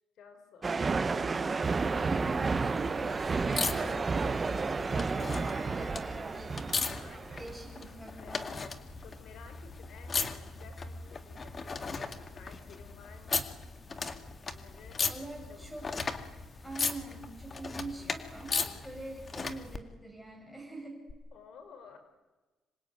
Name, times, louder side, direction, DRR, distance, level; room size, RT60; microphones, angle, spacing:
voice 1, 0.2-1.2 3.8-6.0 7.0-8.4 9.0-13.5 14.5-15.7 21.3-22.0, left 6 dB, 65° left, 8 dB, 4.6 m, -54 dB
sound 1, 0.6-7.7, right 4 dB, 25° right, 1.0 m, -31 dB
voice 2, 1.1-3.8 4.2-6.5 7.4-8.7 15.1-15.9 16.6-21.0, right 2 dB, 5° left, 1 dB, 6.0 m, -44 dB
sound 2, 1.6-19.8 21.1-21.2, left 4 dB, 30° left, 2.1 m, -38 dB
26.5 x 23.5 x 9.5 m, 1.2 s
cardioid pair, 135°, 0 cm